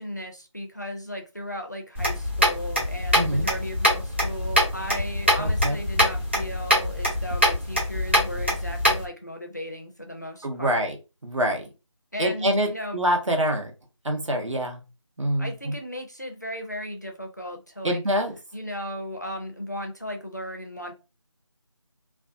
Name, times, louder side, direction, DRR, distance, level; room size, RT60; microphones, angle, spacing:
voice 1, 0.0-10.9 12.1-13.0 15.4-18.0 18.5-20.9, equal, 35° left, 0.4 m, -36 dB
sound 1, 1.9-9.0, equal, 20° right, 0.7 m, -24 dB
voice 2, 3.1-3.5 5.4-5.8 10.4-11.0 11.2-11.7 12.2-13.7 14.0-14.8 15.2-15.7 17.8-18.3, equal, 70° right, 0.9 m, -25 dB
2.6 x 2.2 x 2.4 m
figure-of-eight pair, 180°, 16 cm